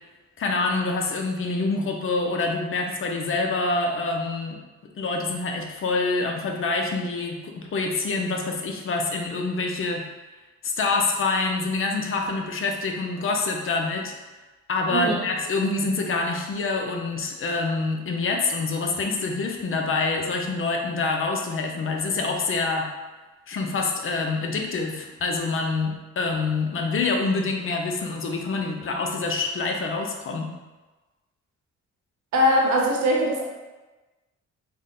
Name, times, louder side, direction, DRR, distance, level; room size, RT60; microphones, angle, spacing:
voice 1, 0.4-4.6 5.0-10.1 10.6-14.1 14.7-22.9 23.5-30.5, left 3 dB, 45° left, 2 dB, 0.5 m, -26 dB
voice 2, 14.9-15.2 32.3-33.4, equal, 70° right, -2 dB, 0.9 m, -21 dB
3.6 x 2.1 x 3.7 m, 1.2 s
cardioid pair, 90°, 30 cm